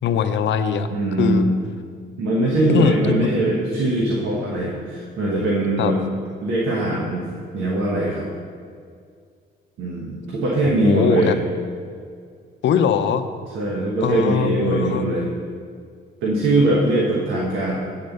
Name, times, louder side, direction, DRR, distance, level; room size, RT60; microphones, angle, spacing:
voice 1, 0.0-0.9 1.2-1.5 2.7-3.3 5.8-5.9 10.6-11.4 12.6-13.3 14.0-15.1, left 8 dB, 65° left, 9 dB, 0.6 m, -21 dB
voice 2, 0.9-1.6 2.2-6.0 6.4-7.3 7.5-8.2 9.8-11.4 13.5-15.3 16.2-17.7, right 2 dB, 80° right, -4 dB, 1.3 m, -21 dB
8.5 x 4.4 x 6.6 m, 2.1 s
cardioid pair, 90°, 20 cm